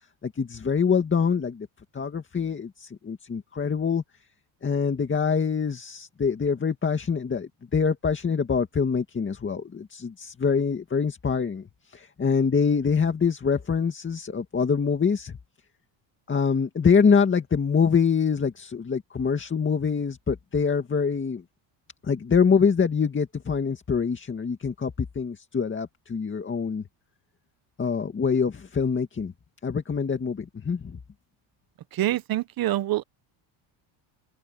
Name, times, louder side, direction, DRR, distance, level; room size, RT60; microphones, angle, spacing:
voice 1, 0.2-1.7 1.9-4.0 4.6-15.4 16.3-21.4 22.0-26.8 27.8-29.3 29.6-31.0, left 6 dB, 25° left, 2.1 m, -25 dB
voice 2, 31.9-33.0, right 14 dB, 45° right, 0.9 m, -26 dB
open air
cardioid pair, 135°, 49 cm